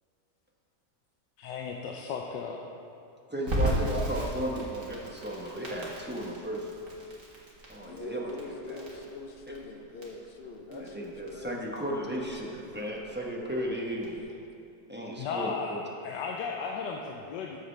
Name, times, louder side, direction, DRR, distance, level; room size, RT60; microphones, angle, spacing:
voice 1, 1.4-2.6 15.2-15.8 16.0-17.6, left 5 dB, 85° left, 0 dB, 1.3 m, -35 dB
voice 2, 3.3-6.7 7.7-8.8 10.7-14.2 14.9-15.8, right 1 dB, 10° right, -2 dB, 0.6 m, -35 dB
Crackle, 3.5-14.2, right 1 dB, 50° right, 2.1 m, -36 dB
voice 3, 7.8-11.8 14.1-14.4, left 3 dB, 60° left, 3 dB, 0.6 m, -44 dB
13.5 x 7.7 x 3.2 m, 2.6 s
omnidirectional pair, 1.8 m